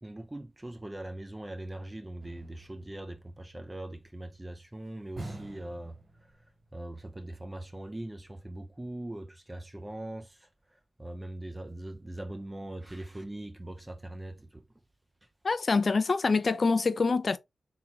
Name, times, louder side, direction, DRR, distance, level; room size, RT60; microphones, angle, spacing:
voice 1, 0.0-6.0 6.2-6.3 6.7-14.7, right 1 dB, 20° right, 0.4 m, -41 dB
sound 1, 2.2-3.9 5.2-6.7 7.0-7.1, right 2 dB, 50° right, 2.1 m, -46 dB
voice 2, 15.4-17.4, left 4 dB, 50° left, 0.4 m, -25 dB
3.6 x 3.0 x 2.7 m
cardioid pair, 80°, 0 cm